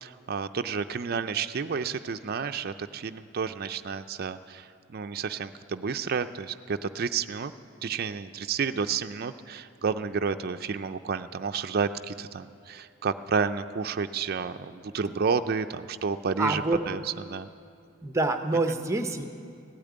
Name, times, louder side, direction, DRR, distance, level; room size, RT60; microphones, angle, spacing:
voice 1, 0.0-7.5 7.8-17.0 17.3-17.5, right 5 dB, 45° right, 8 dB, 0.4 m, -31 dB
voice 2, 16.4-16.8 18.0-19.3, right 2 dB, 15° right, 7 dB, 0.7 m, -26 dB
16.0 x 8.7 x 9.4 m, 2.4 s
head